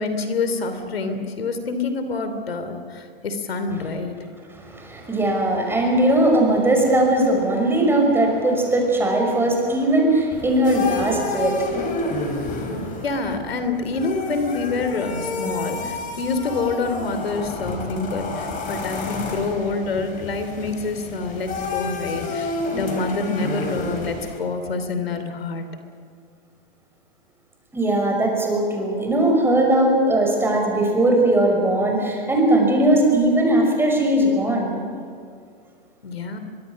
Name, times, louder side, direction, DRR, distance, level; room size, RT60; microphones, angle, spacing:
voice 1, 0.0-4.2 13.0-25.7 36.0-36.4, left 3 dB, 85° left, 8 dB, 3.0 m, -27 dB
voice 2, 4.5-13.0 27.7-34.8, right 1 dB, 10° right, 1 dB, 5.7 m, -19 dB
sound 1, 10.3-24.4, left 3 dB, 25° left, 4.5 m, -30 dB
24.0 x 22.5 x 6.4 m, 2.2 s
hypercardioid pair, 125°, 29 cm